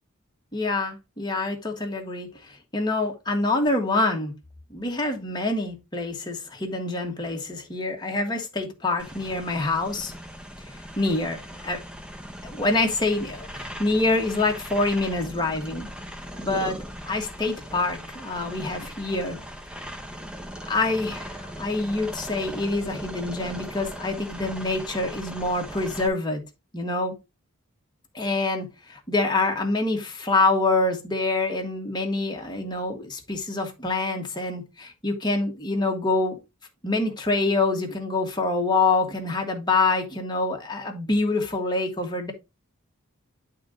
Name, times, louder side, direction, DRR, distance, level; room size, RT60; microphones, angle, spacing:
voice 1, 0.5-4.3 4.7-10.1 11.0-11.8 12.4-15.9 16.4-16.8 17.1-19.4 20.7-26.4 26.7-27.1 28.1-36.4 36.8-42.3, left 2 dB, 20° left, 1.6 m, -26 dB
sound 1, 9.0-26.1, equal, 5° right, 0.9 m, -39 dB
11.0 x 3.8 x 3.7 m
head